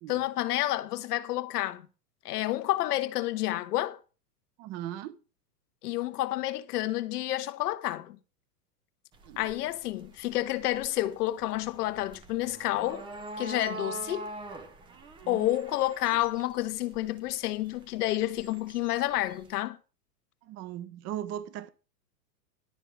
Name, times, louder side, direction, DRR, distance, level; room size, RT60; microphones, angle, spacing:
voice 1, 0.1-1.9 2.2-4.0 5.8-8.2 9.4-13.1 13.4-14.3 15.3-19.8, left 15 dB, 65° left, 1.2 m, -30 dB
voice 2, 4.6-5.2 9.2-9.4 15.2-15.5 20.4-21.7, right 11 dB, 30° right, 0.9 m, -38 dB
sound 1, 9.1-19.6, right 2 dB, 10° right, 0.5 m, -44 dB
12.0 x 4.7 x 8.0 m
hypercardioid pair, 140°, 49 cm